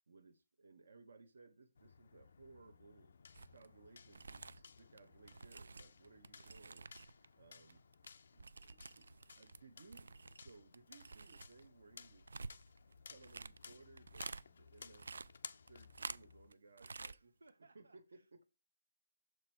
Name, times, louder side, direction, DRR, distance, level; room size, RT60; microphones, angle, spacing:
voice 1, 0.1-3.2 3.5-7.9 8.3-9.1 9.4-12.3 13.0-15.2 15.7-17.3 17.7-18.5, right 3 dB, 55° right, 8 dB, 0.9 m, -62 dB
sound 1, 1.8-16.5, left 5 dB, 40° left, 0.4 m, -59 dB
sound 2, 3.3-3.7 4.0-7.3 7.5-9.6 9.9-14.4 14.8-16.5 16.8-17.2 17.5-17.6, right 4 dB, 70° right, 0.3 m, -50 dB
voice 2, 16.8-18.3, right 3 dB, 90° right, 7 dB, 0.8 m, -67 dB
6.3 x 4.6 x 4.4 m, 0.29 s
hypercardioid pair, 180°, 0 cm